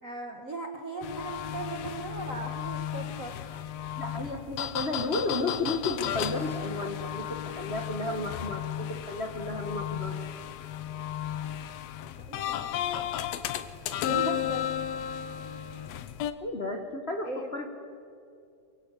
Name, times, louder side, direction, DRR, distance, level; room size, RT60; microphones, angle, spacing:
voice 1, 0.0-3.3 12.2-12.7 14.0-14.7 17.2-17.5, right 3 dB, 50° right, 2 dB, 0.9 m, -38 dB
sound 1, 1.0-16.3, left 10 dB, 70° left, 1.9 m, -34 dB
voice 2, 4.0-10.2 14.1-14.5 16.4-17.7, left 2 dB, 45° left, 3 dB, 0.8 m, -33 dB
23.5 x 23.0 x 8.3 m, 2.5 s
omnidirectional pair, 3.5 m